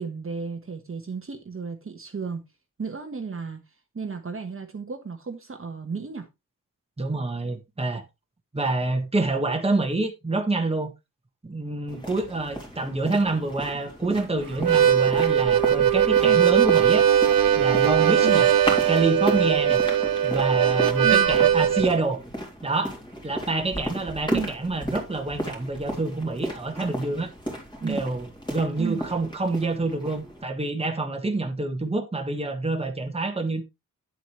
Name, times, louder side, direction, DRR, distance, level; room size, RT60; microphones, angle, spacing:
voice 1, 0.0-2.4 2.8-3.6 3.9-6.3 16.2-16.4 18.2-18.4 21.0-21.3 24.3-24.5 27.8-28.0 28.8-29.0, right 5 dB, 40° right, 1.3 m, -33 dB
voice 2, 7.0-8.0 8.5-10.9 11.4-17.1 17.6-18.5 18.9-19.8 20.2-22.2 22.6-23.0 23.2-27.3 27.8-33.6, right 2 dB, 15° right, 1.5 m, -27 dB
sound 1, 11.9-30.4, equal, 15° left, 3.0 m, -35 dB
Harmonica, 14.5-21.9, right 9 dB, 75° right, 0.8 m, -20 dB
9.4 x 7.8 x 3.1 m
wide cardioid pair, 140°, 34 cm